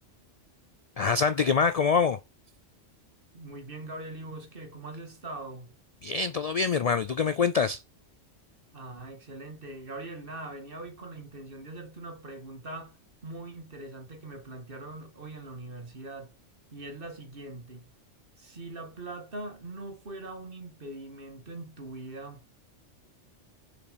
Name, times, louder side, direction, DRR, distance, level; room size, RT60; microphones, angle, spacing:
voice 1, 1.0-2.2 6.0-7.8, left 5 dB, 75° left, 0.3 m, -25 dB
voice 2, 3.3-5.8 8.7-13.0 13.2-16.4 16.7-17.9 18.4-22.6, right 2 dB, 50° right, 2.0 m, -42 dB
6.9 x 4.9 x 5.1 m
omnidirectional pair, 1.2 m